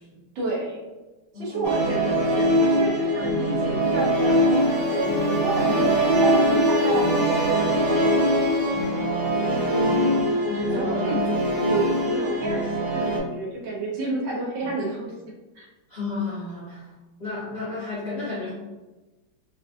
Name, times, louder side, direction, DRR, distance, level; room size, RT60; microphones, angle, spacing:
voice 1, 0.3-0.9 1.3-7.5 9.4-10.4 10.7-11.2 11.6-15.1 15.5-15.7, right 2 dB, 75° right, -3 dB, 1.6 m, -30 dB
voice 2, 1.3-2.0 5.7-5.8 10.5-11.6 14.6-14.7 15.9-16.9 17.2-18.5, left 4 dB, 40° left, -9 dB, 1.0 m, -32 dB
Musical instrument, 1.6-13.2, equal, 60° right, 1.2 m, -22 dB
Wind instrument woodwind instrument, 4.2-8.9, left 4 dB, 65° left, 1.6 m, -34 dB
4.4 x 2.4 x 2.5 m, 1.1 s
omnidirectional pair, 2.1 m